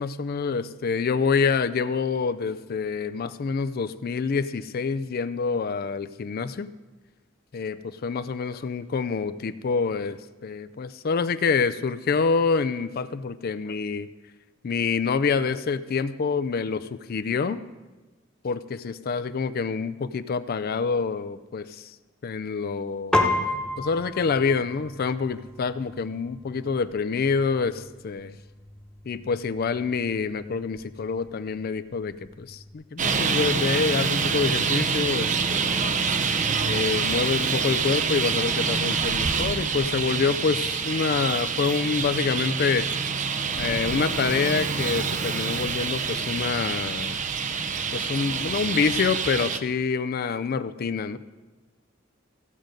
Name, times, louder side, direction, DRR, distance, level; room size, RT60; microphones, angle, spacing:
voice 1, 0.0-6.7 7.5-14.1 14.6-17.6 18.4-21.9 22.2-23.2 23.8-28.4 29.1-35.7 36.6-42.9 43.6-47.2 47.9-51.2, left 5 dB, 50° left, 12 dB, 0.4 m, -27 dB
Piano, 23.1-32.7, left 2 dB, 5° left, 1.1 m, -33 dB
Traffic noise roadway noise, 33.0-49.6, right 5 dB, 40° right, 0.6 m, -26 dB
15.0 x 7.6 x 5.2 m, 1.2 s
head